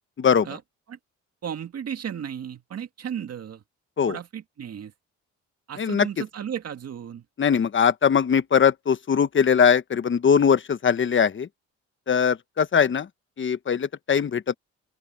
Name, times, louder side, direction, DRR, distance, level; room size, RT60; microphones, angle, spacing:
voice 1, 0.2-0.5 4.0-4.2 5.8-6.1 7.4-11.5 12.1-13.1 13.4-14.5, left 7 dB, 40° left, 1.1 m, -21 dB
voice 2, 1.4-3.6 4.1-4.9 5.7-7.2, right 8 dB, 55° right, 2.0 m, -34 dB
open air
cardioid pair, 90°, 30 cm